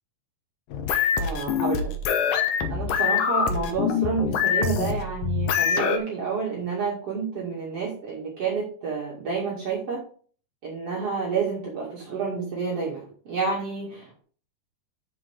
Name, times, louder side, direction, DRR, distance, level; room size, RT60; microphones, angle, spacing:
sound 1, 0.7-6.0, left 7 dB, 85° left, 2.8 m, -25 dB
voice 1, 1.2-1.9 2.7-10.0 10.6-14.2, right 5 dB, 50° right, -4 dB, 3.1 m, -29 dB
12.5 x 5.2 x 3.5 m, 0.43 s
omnidirectional pair, 3.7 m